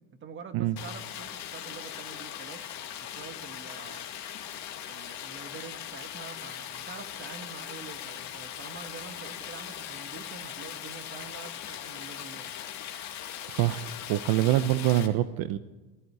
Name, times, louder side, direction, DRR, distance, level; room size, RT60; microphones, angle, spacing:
voice 1, 0.0-2.7 3.0-4.1 4.9-12.6, right 5 dB, 30° right, 9 dB, 1.7 m, -46 dB
Stream, 0.8-15.1, left 10 dB, 45° left, 2.5 m, -40 dB
voice 2, 13.5-13.8 14.1-15.6, right 14 dB, 65° right, 13 dB, 0.9 m, -25 dB
18.5 x 14.5 x 9.6 m, 1.2 s
cardioid pair, 140°, 40 cm